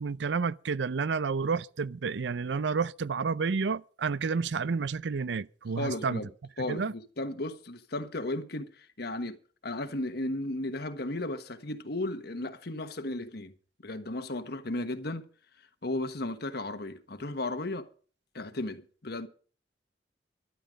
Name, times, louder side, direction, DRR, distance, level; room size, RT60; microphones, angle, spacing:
voice 1, 0.0-6.3 6.7-6.9, right 5 dB, 75° right, 0.5 m, -30 dB
voice 2, 5.8-6.3 6.6-9.4 9.6-13.5 13.8-15.2 15.8-17.9 18.3-19.3, left 2 dB, 60° left, 1.3 m, -35 dB
12.5 x 11.5 x 5.2 m
head